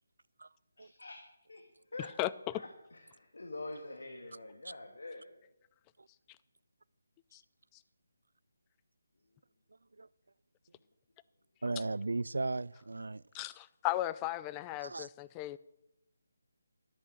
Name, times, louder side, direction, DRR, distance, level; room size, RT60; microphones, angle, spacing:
voice 1, 0.8-1.6 1.9-2.1 2.5-5.4, left 2 dB, 80° left, 1.8 m, -46 dB
voice 2, 2.2-2.6 7.3-7.4 13.3-15.6, left 15 dB, 15° left, 0.3 m, -36 dB
voice 3, 11.6-13.2 14.8-15.1, right 3 dB, 75° right, 0.3 m, -36 dB
13.0 x 8.6 x 6.5 m
figure-of-eight pair, 160°, 0 cm